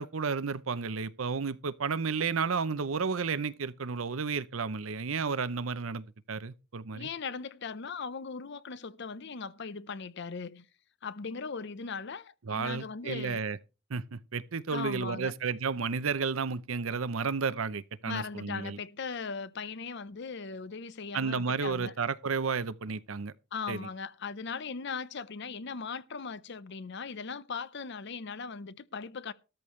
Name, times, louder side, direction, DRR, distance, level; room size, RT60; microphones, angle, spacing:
voice 1, 0.0-7.1 12.5-13.6 13.9-18.8 21.1-23.3 23.7-23.9, right 5 dB, 85° right, 0.7 m, -32 dB
voice 2, 6.9-10.7 11.0-13.4 14.7-15.3 18.0-21.9 23.5-29.3, left 5 dB, 60° left, 0.7 m, -39 dB
13.5 x 13.0 x 3.2 m
head